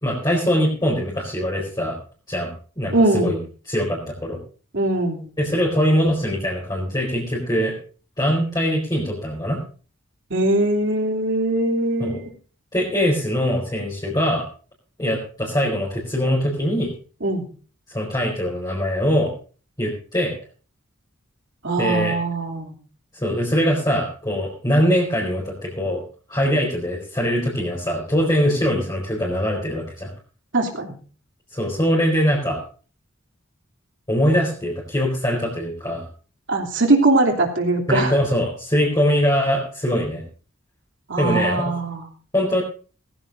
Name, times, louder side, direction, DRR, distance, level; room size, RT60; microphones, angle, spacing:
voice 1, 0.0-2.0 2.3-2.5 2.8-3.4 3.7-4.4 5.4-7.8 8.2-9.6 12.0-12.2 12.7-14.4 15.0-16.9 17.9-19.3 19.8-20.3 21.8-22.2 23.1-26.0 26.3-30.1 31.5-32.6 34.1-36.1 37.9-40.2 41.2-41.7 42.3-42.6, equal, 20° left, -4 dB, 4.4 m, -22 dB
voice 2, 2.9-3.4 4.7-5.3 10.3-12.2 17.2-17.5 21.6-22.7 30.5-30.9 36.5-38.2 41.1-42.0, right 2 dB, 65° right, 2 dB, 3.0 m, -21 dB
20.0 x 15.5 x 2.6 m, 0.39 s
head